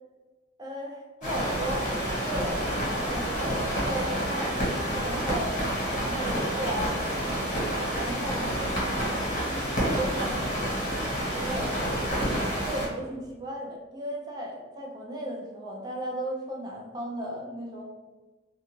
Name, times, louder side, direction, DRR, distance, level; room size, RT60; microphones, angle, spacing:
voice 1, 0.6-1.9 2.2-2.7 3.1-4.6 5.0-5.5 6.0-7.6 8.0-8.6 9.4-11.7 12.6-17.8, right 1 dB, 20° right, -1 dB, 0.4 m, -35 dB
sound 1, 1.2-12.9, equal, 45° left, 1.2 m, -29 dB
2.4 x 2.3 x 3.0 m, 1.2 s
head